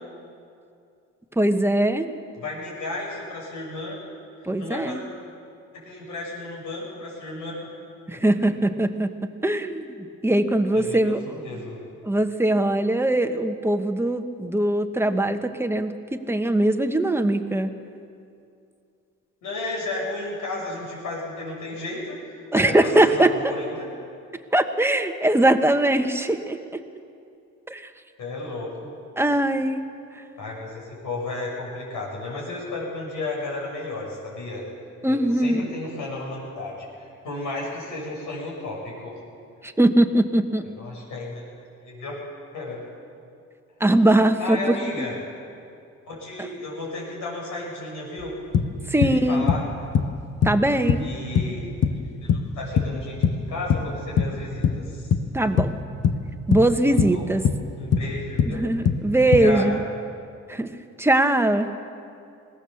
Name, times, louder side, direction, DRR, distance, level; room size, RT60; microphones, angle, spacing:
voice 1, 1.4-2.1 4.4-5.0 8.1-9.1 9.4-9.9 10.2-11.2 12.0-17.7 22.5-23.4 24.5-26.8 27.7-27.9 29.2-29.8 35.0-35.6 39.6-40.6 43.8-45.1 48.9-49.5 50.4-51.1 55.3-55.8 56.5-57.5 58.5-59.8 60.5-60.7 61.0-61.7, right 1 dB, 10° right, 7 dB, 1.3 m, -21 dB
voice 2, 2.4-4.0 4.6-5.0 5.7-7.7 8.1-8.2 10.7-11.9 19.4-23.9 28.2-28.9 30.4-34.6 35.1-39.1 40.8-41.4 41.8-42.2 42.5-42.8 44.4-45.1 46.1-48.3 48.9-49.6 51.0-55.1 56.9-57.2 57.7-58.6 59.2-59.7, left 2 dB, 85° left, -3 dB, 7.2 m, -33 dB
sound 1, 48.2-48.3 48.5-49.2 49.5-50.1 50.4-50.6 50.9-51.1 51.3-52.0 52.3-53.4 53.7-54.4 54.6-55.3 55.6-55.8 56.0-56.7 57.0-57.6 57.9-58.1 58.4-58.6 58.8-59.5, left 7 dB, 55° left, 1.2 m, -22 dB
21.0 x 17.5 x 7.1 m, 2.5 s
cardioid pair, 90°, 30 cm